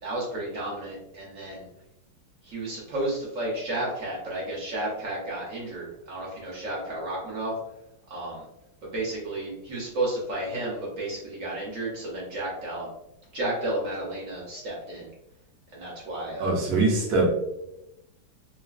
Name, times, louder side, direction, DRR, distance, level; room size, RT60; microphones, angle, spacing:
voice 1, 0.0-1.7 2.4-7.5 8.1-8.4 8.8-12.9 13.3-15.1 15.7-16.5, right 1 dB, 60° right, -4 dB, 0.9 m, -32 dB
voice 2, 16.4-17.3, right 2 dB, 85° right, -2 dB, 0.7 m, -22 dB
3.8 x 2.2 x 2.4 m, 0.89 s
omnidirectional pair, 2.2 m